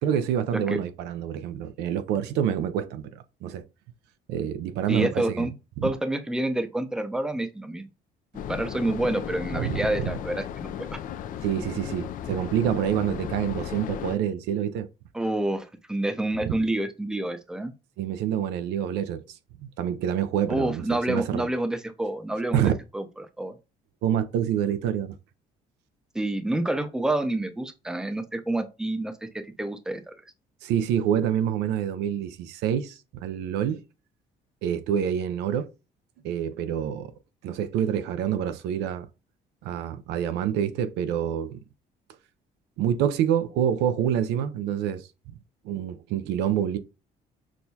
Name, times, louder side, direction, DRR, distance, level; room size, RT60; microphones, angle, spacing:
voice 1, 0.0-3.6 4.3-5.5 5.8-5.9 9.5-10.1 11.4-14.9 16.5-16.6 18.0-19.4 19.8-21.5 22.5-22.7 24.0-25.1 30.6-33.8 34.6-35.7 36.2-37.1 37.4-39.1 39.6-41.6 42.8-45.0 45.6-46.8, right 9 dB, 90° right, 0.5 m, -27 dB
voice 2, 4.9-5.5 5.8-7.9 8.5-11.0 15.1-17.7 20.5-23.5 26.1-29.3 29.6-30.1, right 1 dB, 5° right, 0.5 m, -28 dB
sound 1, 8.3-14.2, left 9 dB, 55° left, 0.4 m, -35 dB
6.2 x 2.2 x 2.7 m
cardioid pair, 110°, 17 cm